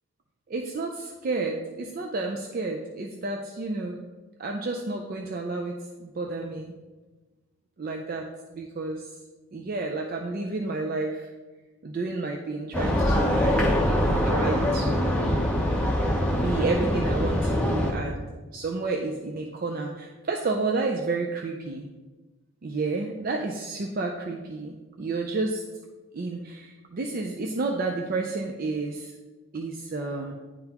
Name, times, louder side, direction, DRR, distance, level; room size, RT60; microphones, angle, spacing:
voice 1, 0.5-4.0 4.4-6.7 7.8-8.2 8.5-9.1 9.5-11.3 11.8-15.4 16.3-18.3 18.5-21.9 22.6-25.6 26.1-29.1 29.5-30.3, right 3 dB, 40° right, 2 dB, 0.4 m, -31 dB
sound 1, 12.7-17.9, left 1 dB, 5° left, 0.7 m, -24 dB
9.9 x 3.8 x 2.9 m, 1.2 s
head